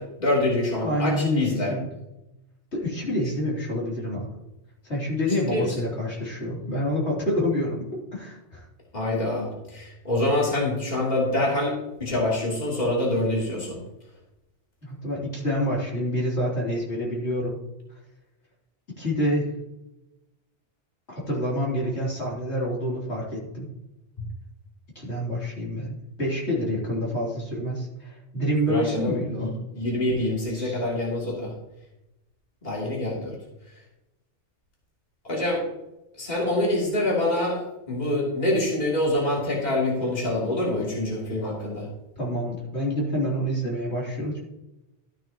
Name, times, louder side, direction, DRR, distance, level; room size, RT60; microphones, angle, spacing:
voice 1, 0.0-1.7 5.5-5.9 8.9-11.7 12.0-13.8 28.7-29.5 29.7-31.5 32.6-33.3 35.2-35.6 36.2-37.6 37.9-41.9, left 1 dB, 35° left, -4 dB, 3.1 m, -25 dB
voice 2, 0.8-1.9 2.7-4.3 4.8-7.8 8.1-8.7 14.8-17.6 19.0-19.5 21.1-23.7 25.0-29.5 30.5-30.8 42.2-44.4, equal, 65° left, -5 dB, 3.5 m, -27 dB
13.0 x 9.0 x 2.9 m, 0.92 s
omnidirectional pair, 1.2 m